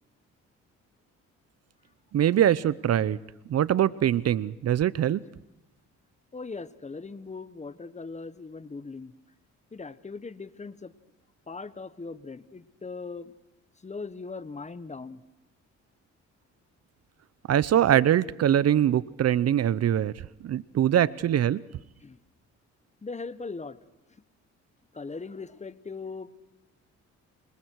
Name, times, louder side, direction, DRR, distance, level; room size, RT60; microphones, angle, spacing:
voice 1, 2.1-3.2 3.5-5.2 17.5-20.1 20.4-21.6, right 10 dB, 55° right, 19 dB, 0.7 m, -23 dB
voice 2, 6.3-9.1 9.7-10.9 11.5-13.3 13.8-15.2 22.0-22.2 23.0-23.8 24.9-26.3, left 4 dB, 25° left, 14 dB, 1.2 m, -39 dB
29.5 x 26.0 x 4.7 m, 0.91 s
cardioid pair, 90°, 30 cm